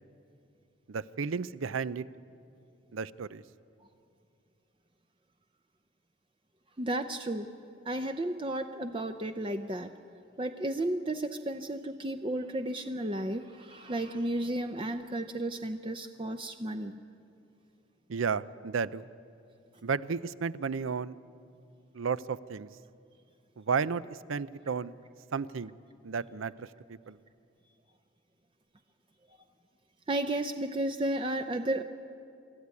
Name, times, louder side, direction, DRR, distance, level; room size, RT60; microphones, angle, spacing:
voice 1, 0.9-2.0 2.9-3.4 18.1-19.0 19.8-21.2 21.9-22.7 23.6-24.9 25.3-25.7 26.0-27.2, right 5 dB, 85° right, 17 dB, 0.5 m, -33 dB
voice 2, 6.8-7.5 7.9-9.9 10.4-17.0 30.1-31.8, right 1 dB, 25° right, 7 dB, 0.6 m, -33 dB
24.5 x 13.5 x 9.6 m, 2.5 s
head